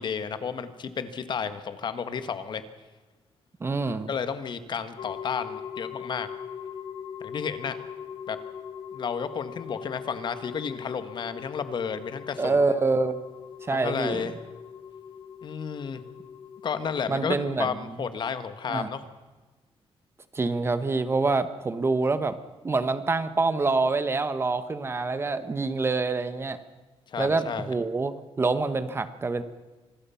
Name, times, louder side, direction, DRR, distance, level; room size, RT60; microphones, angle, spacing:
voice 1, 0.0-2.6 4.1-6.3 7.2-7.8 8.3-8.4 8.9-12.5 13.7-14.3 15.4-16.0 16.6-19.0 27.1-27.7, left 6 dB, 50° left, 11 dB, 1.6 m, -32 dB
voice 2, 3.6-4.1 12.4-13.2 13.6-14.2 17.1-17.8 18.7-18.9 20.3-22.4 22.6-26.6 27.2-29.4, right 3 dB, 25° right, 11 dB, 1.2 m, -26 dB
sound 1, 5.0-17.6, left 8 dB, 65° left, 2.9 m, -41 dB
26.5 x 20.0 x 5.8 m, 1.2 s
wide cardioid pair, 155°, 10 cm